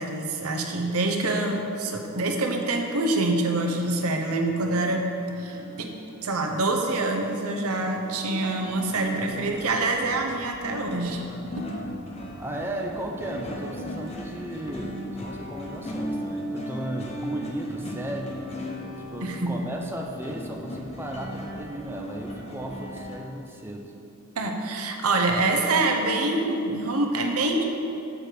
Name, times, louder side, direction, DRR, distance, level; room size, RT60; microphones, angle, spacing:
voice 1, 0.0-5.0 5.4-5.9 6.2-11.2 11.6-11.7 19.2-19.6 24.4-27.6, right 2 dB, 85° right, 3 dB, 0.7 m, -26 dB
sound 1, 3.5-23.2, left 1 dB, 30° left, 0.8 m, -38 dB
voice 2, 12.4-23.9, right 1 dB, 10° right, 1 dB, 0.5 m, -35 dB
6.5 x 4.5 x 6.6 m, 2.8 s
head